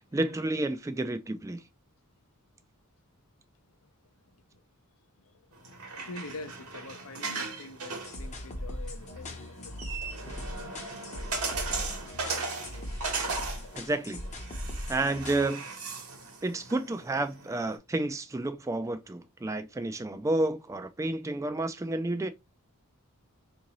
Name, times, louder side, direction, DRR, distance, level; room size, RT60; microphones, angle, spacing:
voice 1, 0.0-1.6 13.8-14.2 14.9-15.7 16.4-22.3, right 2 dB, 15° right, 0.3 m, -30 dB
voice 2, 4.2-4.6 5.2-10.0, left 2 dB, 70° left, 0.6 m, -46 dB
sound 1, 5.5-17.8, right 4 dB, 70° right, 1.0 m, -38 dB
sound 2, 8.0-15.5, left 1 dB, 30° left, 0.7 m, -39 dB
3.7 x 2.6 x 3.0 m
head